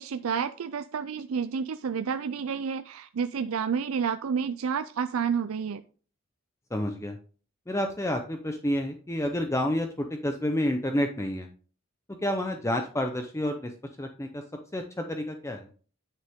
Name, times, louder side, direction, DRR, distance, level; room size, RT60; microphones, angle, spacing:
voice 1, 0.0-5.8, right 6 dB, 85° right, 10 dB, 0.4 m, -30 dB
voice 2, 6.7-7.2 7.7-11.5 12.2-13.7 14.0-14.4 14.7-15.6, left 1 dB, 15° left, 5 dB, 0.7 m, -29 dB
9.6 x 6.4 x 3.6 m, 0.40 s
head